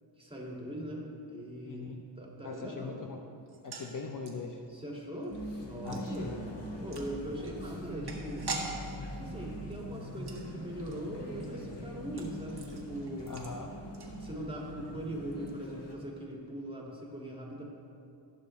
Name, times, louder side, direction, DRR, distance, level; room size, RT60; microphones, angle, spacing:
voice 1, 0.2-3.1 4.7-6.5 6.8-8.5 9.1-13.4 14.2-17.6, right 1 dB, 10° right, -3 dB, 2.1 m, -41 dB
voice 2, 1.7-2.0 2.4-3.2 3.6-4.6 5.8-6.4 13.3-13.7, left 4 dB, 45° left, 2 dB, 0.7 m, -41 dB
sound 1, 3.4-14.7 14.9-15.0 15.3-15.5, right 3 dB, 55° right, 1.5 m, -46 dB
sound 2, 5.3-15.9, equal, 65° left, 1.5 m, -42 dB
15.5 x 6.3 x 3.2 m, 2.6 s
cardioid pair, 55°, 46 cm